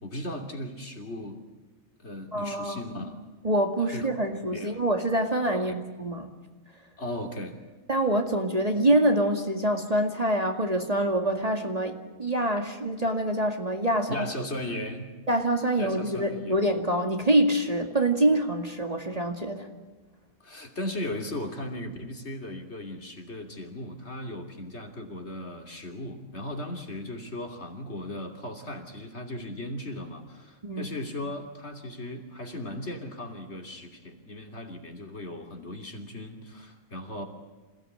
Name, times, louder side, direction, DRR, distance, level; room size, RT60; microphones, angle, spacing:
voice 1, 0.0-1.4 2.0-3.2 3.9-4.1 4.5-4.8 5.5-5.7 7.0-7.6 14.1-15.1 15.8-16.6 20.4-37.2, left 1 dB, 50° left, 3 dB, 3.3 m, -37 dB
voice 2, 2.3-2.8 3.4-6.3 7.9-14.2 15.3-19.7 30.6-30.9, right 1 dB, 30° right, 4 dB, 2.2 m, -25 dB
27.5 x 17.0 x 9.8 m, 1.2 s
omnidirectional pair, 1.4 m